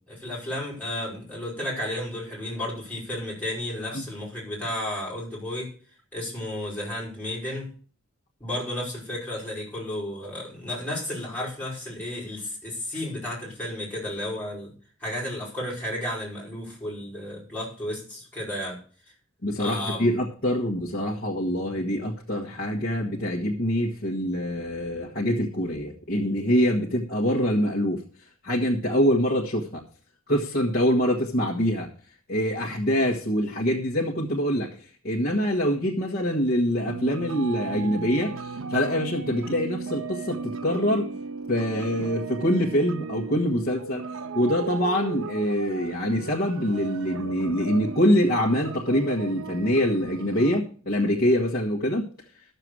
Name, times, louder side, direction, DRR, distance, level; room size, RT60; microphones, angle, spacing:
voice 1, 0.1-5.7 6.1-7.7 8.4-14.7 15.0-18.8 19.6-20.2, left 1 dB, 10° left, -5 dB, 5.5 m, -33 dB
voice 2, 19.4-28.0 28.4-29.8 30.3-31.9 32.3-34.8 35.0-41.1 41.5-52.1, equal, 45° left, -4 dB, 1.5 m, -25 dB
sound 1, 36.9-50.6, right 5 dB, 70° right, 0.7 m, -36 dB
12.5 x 6.8 x 6.3 m, 0.43 s
head